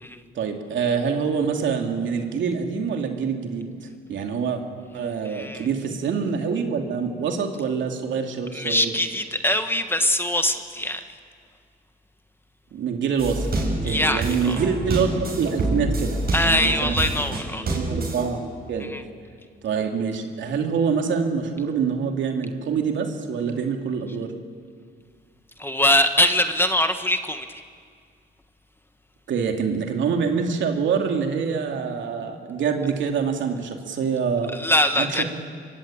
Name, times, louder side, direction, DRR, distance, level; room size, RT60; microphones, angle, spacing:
voice 1, 0.3-4.6 4.9-8.9 12.7-13.5 13.8-16.9 17.7-18.4 18.7-18.9 19.6-24.3 29.3-34.5 35.0-35.2, right 6 dB, 70° right, 3 dB, 3.0 m, -25 dB
voice 2, 5.2-5.7 8.5-11.0 13.8-14.6 16.3-17.6 18.9-19.0 25.6-27.4 34.5-35.2, left 1 dB, 10° left, 8 dB, 1.6 m, -22 dB
sound 1, 13.2-18.2, right 2 dB, 50° right, 7.5 m, -27 dB
24.5 x 23.0 x 8.9 m, 2.1 s
cardioid pair, 90°, 20 cm